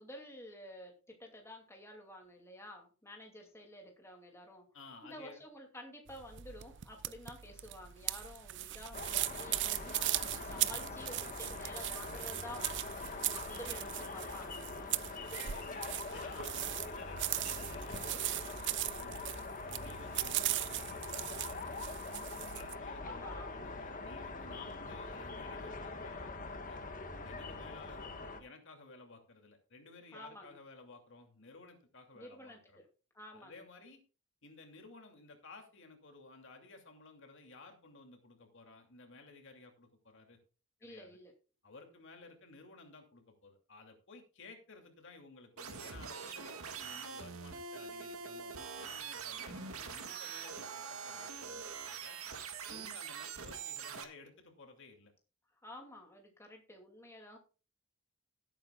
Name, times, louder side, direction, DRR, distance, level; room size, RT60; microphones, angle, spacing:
voice 1, 0.0-4.6 5.0-14.6 23.0-23.6 30.1-30.5 32.1-32.6 33.1-33.6 40.8-41.3 55.6-57.4, left 1 dB, 10° left, 1 dB, 2.5 m, -51 dB
voice 2, 4.7-5.4 15.1-18.3 19.0-19.3 19.8-26.8 27.2-32.8 33.3-34.0 34.4-40.4 40.8-41.2 41.6-52.2 52.7-55.1, left 3 dB, 60° left, 4 dB, 2.6 m, -56 dB
sound 1, 6.1-22.8, right 16 dB, 55° right, 0.5 m, -39 dB
sound 2, 8.9-28.4, left 3 dB, 40° left, 1.4 m, -43 dB
sound 3, 45.6-54.0, right 6 dB, 80° right, 1.9 m, -44 dB
17.5 x 8.9 x 2.4 m, 0.35 s
head